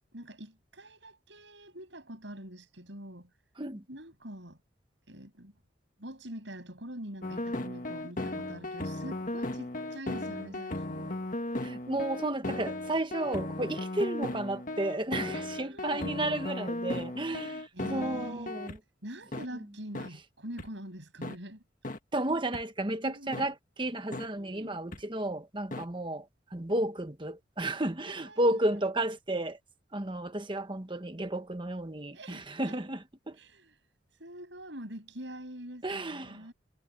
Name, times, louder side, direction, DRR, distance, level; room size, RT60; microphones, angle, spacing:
voice 1, 0.1-3.3 3.9-4.6 5.1-5.5 6.0-11.2 15.1-16.0 17.7-18.6 19.0-21.6 23.0-23.4 24.3-24.8 28.1-28.8 32.1-32.8 33.4-33.7 34.2-36.5, right 1 dB, 70° right, 7.7 m, -45 dB
sound 1, 7.2-18.8 19.3-19.5 19.9-20.1 20.6-20.7 21.2-21.4 21.8-22.0 22.5-22.6 23.3-23.5 24.1-24.3 24.9-25.0 25.7-25.8, left 1 dB, 45° left, 1.8 m, -36 dB
voice 2, 11.6-18.8 19.5-19.6 22.1-26.3 26.5-29.6 29.9-33.0 33.3-33.4 35.8-36.5, right 1 dB, 25° right, 1.3 m, -32 dB
head